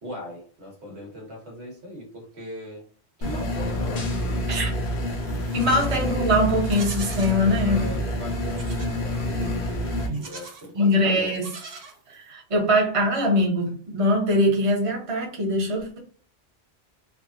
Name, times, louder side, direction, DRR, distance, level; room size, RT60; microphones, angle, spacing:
voice 1, 0.0-2.8 3.2-4.5 5.2-5.7 7.6-11.3, left 1 dB, 85° right, 1.5 m, -39 dB
sound 1, 3.2-10.1, left 1 dB, 75° left, 1.1 m, -27 dB
sound 2, 3.4-4.4, left 3 dB, 45° left, 0.7 m, -35 dB
Livestock farm animals working animals, 5.3-6.0 6.6-7.4 8.5-9.0 10.0-10.7 11.3-12.3, right 4 dB, 65° right, 1.0 m, -42 dB
voice 2, 5.5-7.9 10.1-10.2 10.7-11.5 12.1-16.0, left 1 dB, 35° right, 0.9 m, -22 dB
3.5 x 2.3 x 2.4 m
omnidirectional pair, 1.1 m